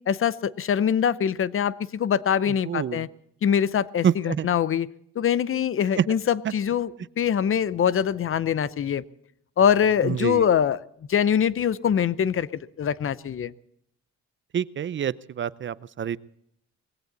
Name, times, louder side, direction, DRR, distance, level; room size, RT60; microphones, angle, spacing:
voice 1, 0.1-3.1 3.4-4.9 5.2-9.0 9.6-10.8 11.1-13.5, left 8 dB, 45° left, 18 dB, 0.7 m, -23 dB
voice 2, 2.7-3.1 4.0-4.5 6.0-6.1 6.4-6.5 10.0-10.5 14.5-16.2, right 8 dB, 40° right, 18 dB, 0.6 m, -26 dB
19.5 x 16.5 x 4.0 m, 0.73 s
cardioid pair, 90°, 30 cm